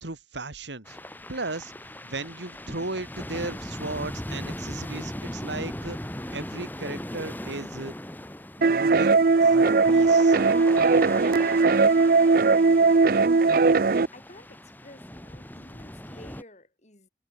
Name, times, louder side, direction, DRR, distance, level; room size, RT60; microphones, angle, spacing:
voice 1, 0.0-1.0 1.3-1.7 2.0-6.0 6.3-7.9 8.6-10.4, right 2 dB, 85° right, 2.4 m, -36 dB
sound 1, 0.8-16.4, left 1 dB, 10° left, 3.5 m, -39 dB
sound 2, 8.6-14.1, right 4 dB, 55° right, 0.5 m, -19 dB
voice 2, 11.3-12.3 13.5-17.1, left 1 dB, 40° left, 5.9 m, -51 dB
head